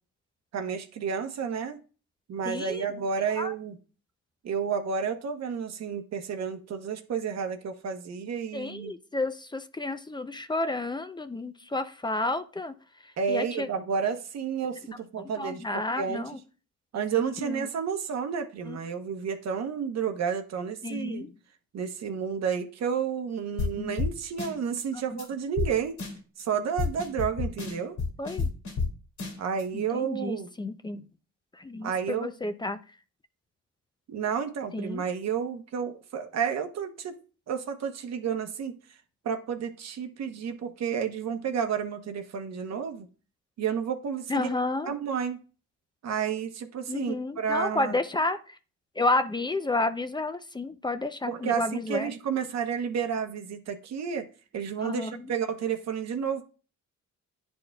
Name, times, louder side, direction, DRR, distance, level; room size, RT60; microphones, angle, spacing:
voice 1, 0.5-1.8 2.3-3.8 4.4-8.9 13.2-16.2 16.9-21.2 21.7-26.0 26.4-28.0 29.4-30.5 31.8-32.3 34.1-37.2 37.5-38.7 39.2-43.1 43.6-44.5 44.9-45.4 46.0-48.0 51.3-54.2 54.5-56.4, right 7 dB, 60° right, 6 dB, 0.9 m, -31 dB
voice 2, 2.4-2.9 3.4-3.5 8.5-12.7 13.3-13.7 15.4-16.4 17.2-17.7 18.7-18.8 20.8-21.3 23.7-24.0 24.9-25.2 28.2-28.5 29.7-31.0 31.5-32.8 34.7-35.0 44.3-44.9 46.9-48.6 49.0-52.1 54.8-55.3, left 2 dB, 15° left, 10 dB, 0.5 m, -31 dB
sound 1, 23.6-23.7 24.0-24.1 24.4-24.8 25.2-25.3 25.6-25.7 26.0-26.4 26.8-28.9 29.2-29.6, left 4 dB, 70° left, 1.9 m, -30 dB
10.0 x 4.4 x 2.3 m, 0.36 s
cardioid pair, 90°, 30 cm